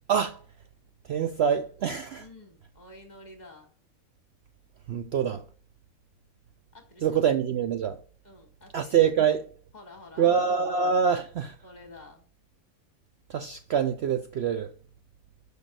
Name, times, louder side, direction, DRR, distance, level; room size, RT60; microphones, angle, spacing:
voice 1, 0.1-0.4 1.1-2.2 4.9-5.4 7.0-8.0 8.7-9.4 10.2-11.5 13.3-14.7, right 7 dB, 60° right, 0.7 m, -25 dB
voice 2, 2.2-3.8 6.7-7.3 8.2-9.0 9.3-9.4 9.7-10.6 11.6-12.2, left 2 dB, 30° left, 1.8 m, -50 dB
6.1 x 5.2 x 6.4 m
omnidirectional pair, 1.5 m